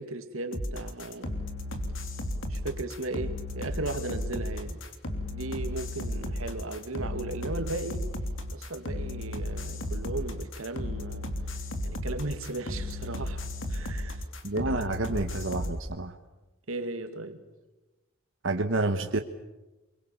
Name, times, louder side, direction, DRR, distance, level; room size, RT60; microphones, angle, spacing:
voice 1, 0.0-1.3 2.5-4.8 5.3-8.1 8.5-11.3 11.8-14.2 14.6-15.2 16.7-17.5, right 2 dB, 85° right, 7 dB, 2.5 m, -36 dB
sound 1, 0.5-15.8, left 1 dB, 65° left, 3.1 m, -34 dB
voice 2, 14.4-16.1 18.4-19.2, right 2 dB, 65° right, 5 dB, 1.4 m, -29 dB
29.5 x 23.5 x 7.2 m, 1.1 s
head